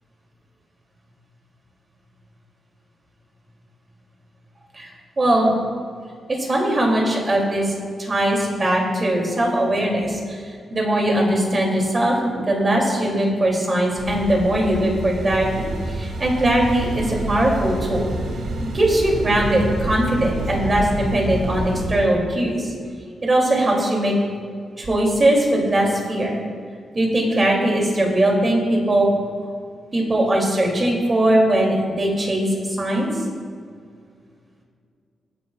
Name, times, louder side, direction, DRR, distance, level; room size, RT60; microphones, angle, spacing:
voice 1, 5.2-5.5 6.3-12.2 12.5-18.1 18.7-22.7 23.2-24.1 24.8-26.3 26.9-29.1 29.9-33.1, right 1 dB, 25° right, -1 dB, 2.8 m, -20 dB
sound 1, 14.0-22.0, right 1 dB, 85° right, 2.0 m, -28 dB
21.5 x 10.5 x 2.4 m, 2.1 s
wide cardioid pair, 145°, 0 cm